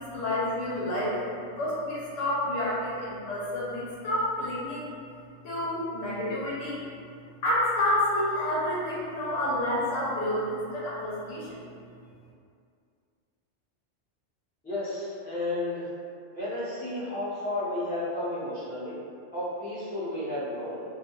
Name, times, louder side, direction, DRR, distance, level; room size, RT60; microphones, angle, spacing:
voice 1, 0.0-4.9 5.4-6.8 7.4-11.6, left 1 dB, 80° left, -6 dB, 1.1 m, -29 dB
voice 2, 14.6-15.9 16.3-18.9 19.3-20.8, left 1 dB, 10° left, -11 dB, 0.5 m, -32 dB
2.3 x 2.2 x 2.9 m, 2.3 s
omnidirectional pair, 1.3 m